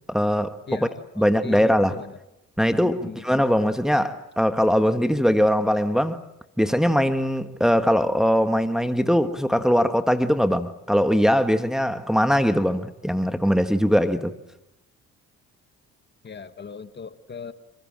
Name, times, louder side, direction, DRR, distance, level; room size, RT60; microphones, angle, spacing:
voice 1, 0.1-0.8 1.2-2.0 2.6-6.2 6.6-14.3, equal, ahead, 1.5 m, -21 dB
voice 2, 0.7-2.2 2.8-3.2 16.2-17.5, left 6 dB, 35° left, 1.4 m, -39 dB
27.0 x 26.5 x 7.6 m
cardioid pair, 90°, 30 cm